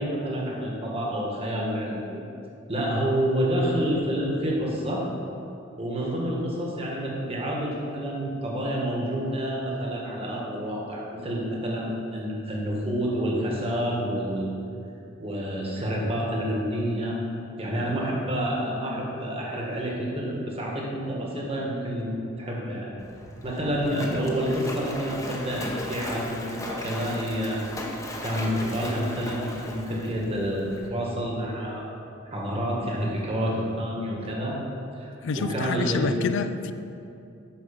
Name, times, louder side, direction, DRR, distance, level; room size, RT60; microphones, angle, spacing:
voice 1, 0.0-2.2 2.7-5.0 5.8-14.5 15.2-17.2 17.6-22.1 22.4-22.9 23.4-27.6 28.2-31.8 32.2-34.6 35.0-36.1, equal, 30° right, -3 dB, 1.6 m, -28 dB
Splash splatter, 23.0-30.9, left 1 dB, 15° left, 0.9 m, -37 dB
voice 2, 35.2-36.7, left 5 dB, 60° left, 11 dB, 0.4 m, -28 dB
8.9 x 6.6 x 5.2 m, 2.7 s
head